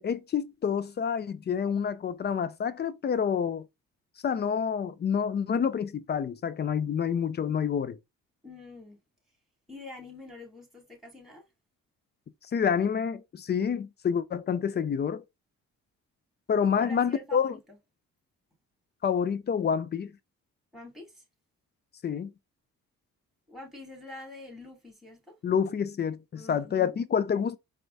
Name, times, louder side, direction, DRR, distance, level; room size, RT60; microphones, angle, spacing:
voice 1, 0.0-3.6 4.2-8.0 12.5-15.2 16.5-17.6 19.0-20.1 22.0-22.3 25.4-27.6, left 7 dB, 35° left, 0.5 m, -28 dB
voice 2, 8.4-9.0 9.7-11.4 16.7-17.8 20.7-21.2 23.5-25.4 26.3-26.9, left 2 dB, ahead, 2.5 m, -46 dB
4.5 x 2.2 x 3.9 m
cardioid pair, 90°, 30 cm